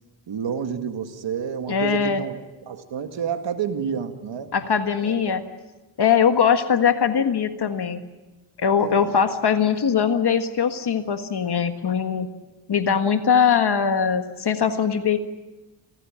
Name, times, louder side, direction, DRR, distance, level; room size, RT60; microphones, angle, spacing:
voice 1, 0.3-2.4 2.7-4.5 5.0-5.4 8.8-9.1, right 7 dB, 85° right, 6 dB, 2.0 m, -29 dB
voice 2, 1.7-2.2 4.5-5.4 6.0-8.0 8.6-12.3 12.7-15.2, left 7 dB, 60° left, 8 dB, 1.6 m, -21 dB
28.0 x 16.0 x 8.8 m, 1.1 s
cardioid pair, 85°, 44 cm